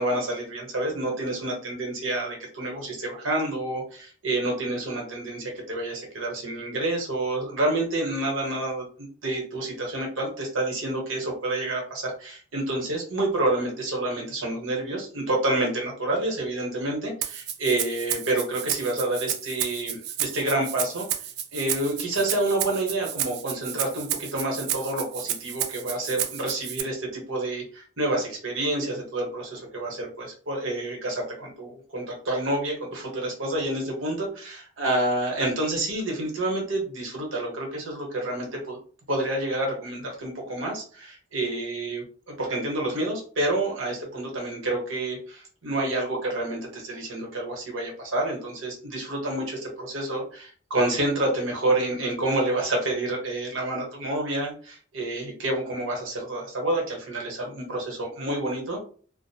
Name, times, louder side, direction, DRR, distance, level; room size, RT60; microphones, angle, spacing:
voice 1, 0.0-21.1 21.5-38.8 39.1-58.8, right 1 dB, 85° right, -1 dB, 1.0 m, -28 dB
Rattle (instrument), 17.2-26.8, right 10 dB, 55° right, 0.3 m, -31 dB
2.5 x 2.0 x 2.7 m, 0.43 s
head